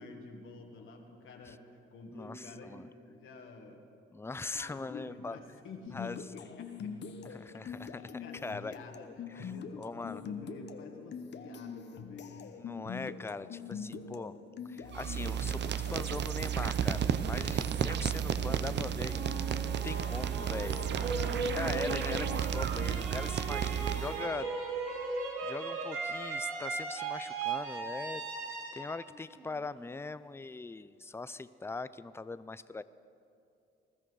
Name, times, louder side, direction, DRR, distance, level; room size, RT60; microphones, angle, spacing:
voice 1, 0.0-3.9 4.5-7.2 7.5-7.6 8.0-12.6 18.4-19.1 21.1-21.5, left 3 dB, 75° left, 2 dB, 1.9 m, -49 dB
voice 2, 2.1-2.9 4.1-5.4 5.9-6.2 7.2-8.7 9.3-9.5 9.8-10.2 12.6-14.3 14.7-19.1 19.6-20.8 21.5-24.5 25.4-28.2 28.7-32.8, left 3 dB, 10° left, 15 dB, 0.5 m, -41 dB
sound 1, 5.9-16.1, left 6 dB, 60° left, 1.0 m, -44 dB
sound 2, 14.9-24.3, right 9 dB, 60° right, 0.7 m, -33 dB
sound 3, 19.0-30.0, right 3 dB, 85° right, 2.7 m, -37 dB
20.5 x 13.0 x 4.8 m, 2.6 s
cardioid pair, 80°, 21 cm